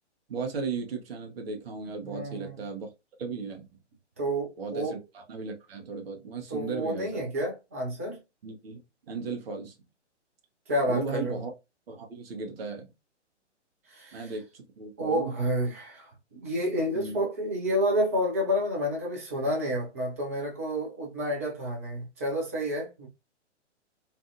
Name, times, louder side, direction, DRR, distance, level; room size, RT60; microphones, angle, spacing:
voice 1, 0.3-2.9 3.2-3.7 4.6-7.2 8.4-8.8 9.1-9.7 10.9-11.5 11.9-12.9 14.1-15.5 16.9-17.2, right 4 dB, 55° right, 0.9 m, -36 dB
voice 2, 2.0-2.6 4.2-5.0 6.5-8.2 10.7-11.4 13.9-14.3 15.0-23.1, equal, 15° right, 0.4 m, -30 dB
2.5 x 2.4 x 2.5 m
figure-of-eight pair, 120°, 36 cm